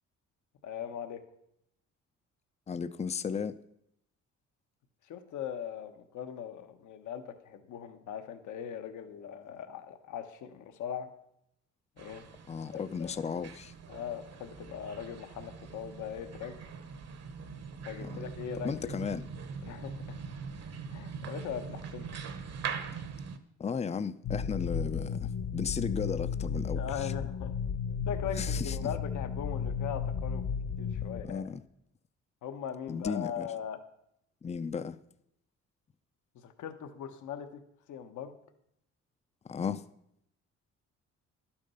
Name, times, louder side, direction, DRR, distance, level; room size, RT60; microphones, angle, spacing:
voice 1, 0.6-1.2 5.1-11.1 12.0-12.3 12.7-13.1 13.9-16.6 17.9-19.0 19.6-20.2 20.9-22.2 26.8-27.6 28.0-30.4 30.8-31.4 32.4-33.8 36.3-37.6 37.9-38.4, left 8 dB, 75° left, 1.2 m, -40 dB
voice 2, 2.7-3.6 12.5-13.7 18.0-18.2 18.6-19.2 23.6-27.1 28.4-28.8 31.2-31.6 32.9-33.5 34.4-35.0 39.4-39.8, left 6 dB, 20° left, 0.5 m, -35 dB
sound 1, 12.0-23.4, right 6 dB, 55° right, 1.2 m, -42 dB
sound 2, 24.2-31.2, left 6 dB, 60° left, 1.1 m, -34 dB
11.5 x 8.8 x 5.6 m
cardioid pair, 90°, 30 cm